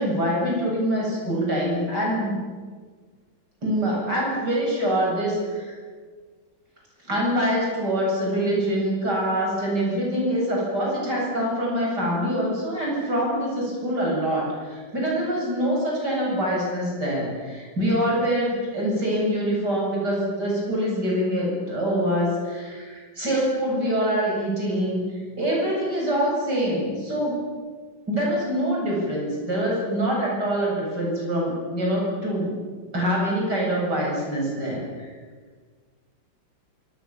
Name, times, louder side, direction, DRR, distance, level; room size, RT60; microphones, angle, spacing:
voice 1, 0.0-2.4 3.6-5.8 7.1-25.0 25.4-27.4 28.1-32.5 32.9-35.1, equal, 65° right, -3 dB, 8.8 m, -25 dB
26.5 x 25.5 x 7.3 m, 1.5 s
omnidirectional pair, 2.0 m